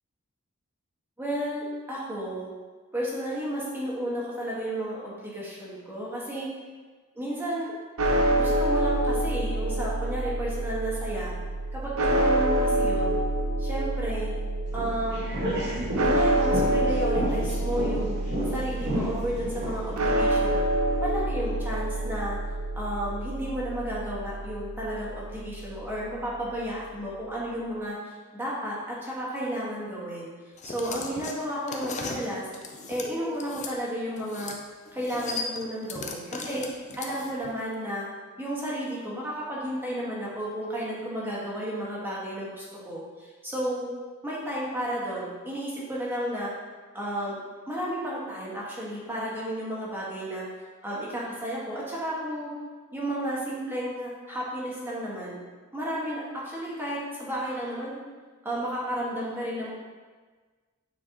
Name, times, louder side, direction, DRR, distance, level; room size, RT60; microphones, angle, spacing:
voice 1, 1.2-2.5 2.9-6.5 7.1-7.7 8.3-11.3 11.7-13.2 13.6-14.3 14.7-15.3 16.0-18.2 18.5-20.6 21.0-22.4 22.7-30.3 30.6-32.5 32.9-34.6 34.9-36.7 37.0-38.1 38.4-43.9 44.2-46.5 46.9-47.4 47.7-50.4 50.8-52.5 52.9-55.4 55.7-58.0 58.4-59.7, right 1 dB, 10° right, -7 dB, 1.5 m, -32 dB
sound 1, 8.0-26.2, right 1 dB, 85° right, 0.7 m, -27 dB
sound 2, 14.7-19.9, equal, 55° right, 1.8 m, -32 dB
sound 3, 30.6-33.7 34.2-34.6 34.9-37.5, left 4 dB, 35° left, 0.6 m, -37 dB
8.8 x 4.6 x 2.9 m, 1.4 s
head